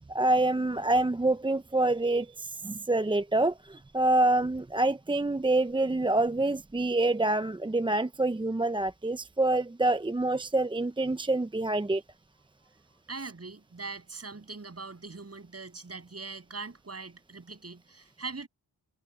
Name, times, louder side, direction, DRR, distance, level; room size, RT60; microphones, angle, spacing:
voice 1, 0.1-12.0, right 2 dB, 10° right, 0.7 m, -26 dB
voice 2, 13.1-18.5, right 3 dB, 35° right, 7.8 m, -41 dB
supercardioid pair, 50°, 42 cm